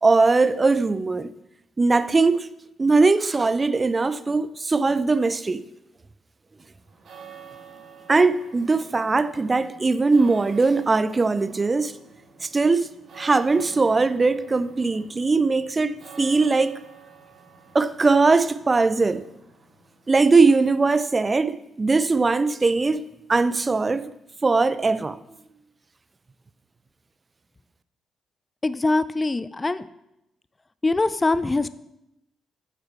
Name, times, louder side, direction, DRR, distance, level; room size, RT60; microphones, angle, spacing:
voice 1, 0.0-1.3 1.8-2.5 2.8-5.6 8.1-11.9 12.4-12.9 13.2-16.8 17.7-19.2 20.1-23.0 23.3-24.1 24.4-25.2, right 3 dB, 30° right, 0.6 m, -20 dB
sound 1, 6.8-20.4, right 6 dB, 50° right, 2.1 m, -48 dB
voice 2, 28.6-29.8 30.8-31.7, left 2 dB, 25° left, 0.5 m, -23 dB
14.5 x 9.4 x 3.2 m
figure-of-eight pair, 40°, 0 cm